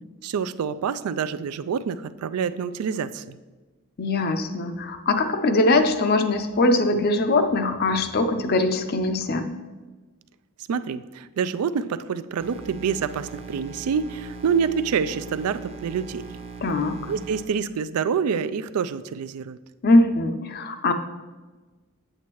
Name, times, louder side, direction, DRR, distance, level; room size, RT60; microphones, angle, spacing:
voice 1, 0.2-3.4 10.7-16.2 17.1-19.6, right 6 dB, 85° right, 14 dB, 0.3 m, -27 dB
voice 2, 4.0-9.6 16.6-17.1 19.8-20.9, left 2 dB, 45° left, 8 dB, 0.5 m, -21 dB
sound 1, 12.4-17.5, right 4 dB, 25° right, 0.7 m, -39 dB
8.2 x 7.8 x 3.0 m, 1.3 s
head